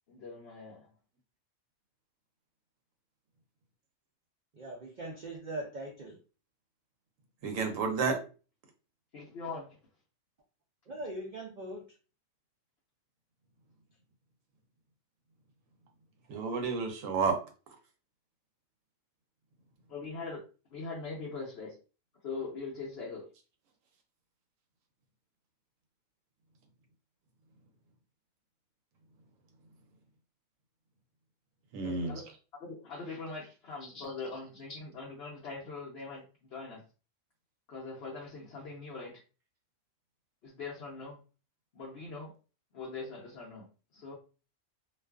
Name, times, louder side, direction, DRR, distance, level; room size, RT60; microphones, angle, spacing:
voice 1, 0.1-0.9 9.1-9.8 19.9-20.4 20.7-21.8 22.2-23.2 31.8-32.2 32.6-36.8 37.7-39.2 40.4-41.2 41.7-42.3 42.7-43.7 43.9-44.1, left 4 dB, 60° left, -4 dB, 0.8 m, -42 dB
voice 2, 4.5-6.2 10.9-11.8, right 1 dB, 70° right, -1 dB, 0.4 m, -40 dB
voice 3, 7.4-8.2 16.3-17.4 31.7-32.1, right 5 dB, 85° right, 4 dB, 1.0 m, -30 dB
2.4 x 2.3 x 2.3 m, 0.34 s
omnidirectional pair, 1.4 m